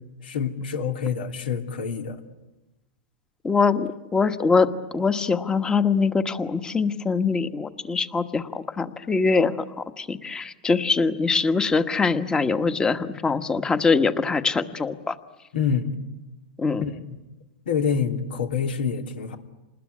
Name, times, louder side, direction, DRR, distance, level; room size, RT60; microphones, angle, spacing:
voice 1, 0.2-2.2 15.5-16.0 16.8-17.0 17.6-19.4, left 6 dB, 85° left, 5 dB, 3.1 m, -26 dB
voice 2, 3.4-15.2 16.6-16.8, left 4 dB, 15° left, 10 dB, 1.3 m, -23 dB
28.0 x 20.5 x 9.8 m, 1.0 s
hypercardioid pair, 130°, 5 cm